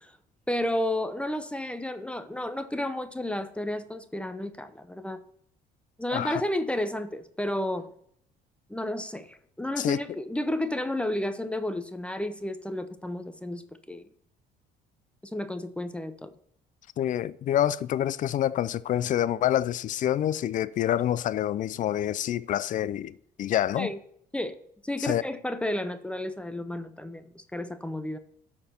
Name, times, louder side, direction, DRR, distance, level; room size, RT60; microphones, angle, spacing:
voice 1, 0.5-5.2 6.0-7.9 8.7-14.0 15.3-16.3 23.7-24.0 24.3-24.6 24.8-28.2, left 1 dB, 5° left, 0.6 m, -32 dB
voice 2, 6.1-6.4 9.8-10.0 17.0-23.9 25.0-25.2, left 11 dB, 50° left, 0.4 m, -27 dB
12.5 x 4.4 x 4.4 m
cardioid pair, 110°, 17 cm